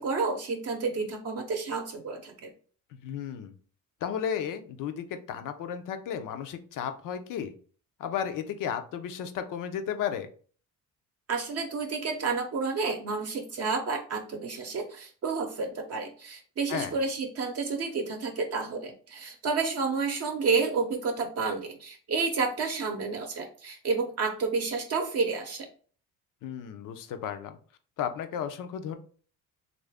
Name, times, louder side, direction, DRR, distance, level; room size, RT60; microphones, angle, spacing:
voice 1, 0.0-2.5 11.3-25.7, right 4 dB, 45° right, 3 dB, 0.7 m, -30 dB
voice 2, 3.0-3.5 4.0-7.5 8.0-10.3 16.7-16.9 26.4-27.6 28.0-29.0, left 8 dB, 70° left, 9 dB, 0.6 m, -34 dB
3.2 x 2.6 x 3.4 m, 0.42 s
cardioid pair, 105°, 34 cm